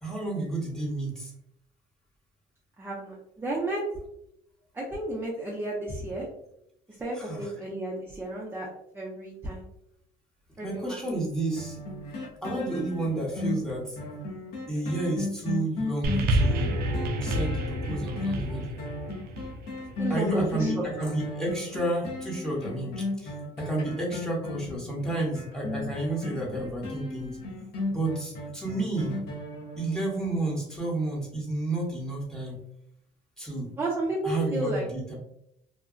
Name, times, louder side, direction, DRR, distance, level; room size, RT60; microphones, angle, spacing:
voice 1, 0.0-1.3 7.2-7.5 10.6-11.8 12.4-14.0 14.7-16.7 17.2-18.8 20.1-27.4 27.9-29.2 29.8-32.6 33.4-33.7 34.2-35.1, right 2 dB, 5° left, -3 dB, 1.0 m, -31 dB
voice 2, 2.8-3.8 4.7-6.3 7.0-8.7 8.9-9.7 10.6-11.0 20.0-20.8 33.8-34.8, right 1 dB, 15° right, -4 dB, 0.5 m, -32 dB
sound 1, 11.6-30.3 30.7-30.8, left 2 dB, 70° left, 0.8 m, -35 dB
sound 2, 16.0-20.6 21.4-21.5, right 1 dB, 65° right, 0.4 m, -29 dB
2.8 x 2.2 x 2.4 m, 0.77 s
cardioid pair, 110°, 17 cm